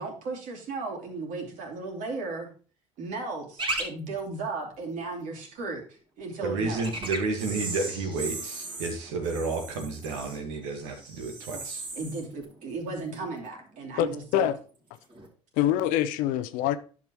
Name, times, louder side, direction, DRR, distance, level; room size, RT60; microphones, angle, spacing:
voice 1, 0.0-2.5 3.0-6.8 11.5-11.6 12.0-14.5, right 3 dB, 60° right, 0 dB, 2.9 m, -35 dB
sound 1, 3.6-3.8 4.2-4.3 6.7-13.6 13.9-14.4 15.1-15.3, right 2 dB, 35° right, 2.6 m, -37 dB
voice 2, 6.4-11.8, right 3 dB, 75° right, 3 dB, 1.7 m, -31 dB
voice 3, 14.0-14.6 15.6-16.8, left 11 dB, 65° left, 13 dB, 0.7 m, -25 dB
10.5 x 5.9 x 3.1 m, 0.39 s
hypercardioid pair, 70°, 15 cm